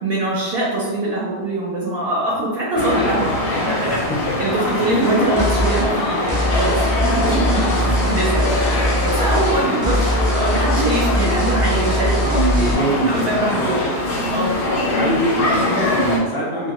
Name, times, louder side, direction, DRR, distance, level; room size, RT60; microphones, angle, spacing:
voice 1, 0.0-4.1 4.4-10.0 10.3-12.7 13.1-13.9 14.3-14.6, right 2 dB, 65° right, -6 dB, 0.8 m, -23 dB
sound 1, 2.8-16.2, left 2 dB, 85° left, 0.9 m, -23 dB
voice 2, 3.8-4.4 7.7-7.9 9.5-9.9 12.2-13.9 14.6-16.7, right 2 dB, 30° left, -6 dB, 0.4 m, -23 dB
sound 2, 5.4-5.9 6.3-9.6 9.8-12.7, equal, 25° right, 0.6 m, -21 dB
2.1 x 2.1 x 2.9 m, 1.2 s
omnidirectional pair, 1.1 m